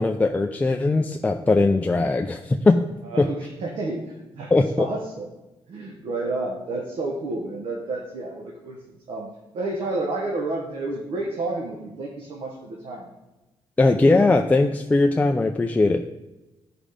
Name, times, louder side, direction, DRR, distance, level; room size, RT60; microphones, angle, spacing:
voice 1, 0.0-2.8 4.5-4.9 13.8-16.0, left 3 dB, 15° left, 3 dB, 0.4 m, -20 dB
voice 2, 3.0-4.5 4.8-5.3 5.7-13.1, right 2 dB, 75° right, -1 dB, 1.4 m, -30 dB
10.0 x 5.1 x 5.1 m, 1.1 s
wide cardioid pair, 145°, 10 cm